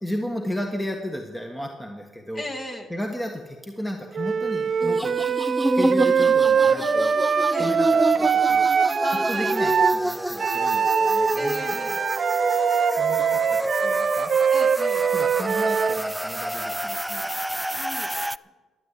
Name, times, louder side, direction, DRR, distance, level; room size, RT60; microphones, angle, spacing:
voice 1, 0.0-2.5 2.9-5.2 5.7-11.8 13.0-14.3 15.1-17.3, equal, 10° left, 2 dB, 1.5 m, -34 dB
voice 2, 2.4-2.9 7.5-7.7 9.0-9.5 11.3-12.0 14.5-15.1 17.8-18.1, left 1 dB, 35° left, 2 dB, 2.4 m, -35 dB
Wind instrument woodwind instrument, 4.1-10.0 10.4-16.0, right 6 dB, 50° right, 0.6 m, -22 dB
sound 1, 4.8-18.4, right 1 dB, 5° right, 0.3 m, -28 dB
13.0 x 9.4 x 8.4 m, 1.3 s
cardioid pair, 90°, 0 cm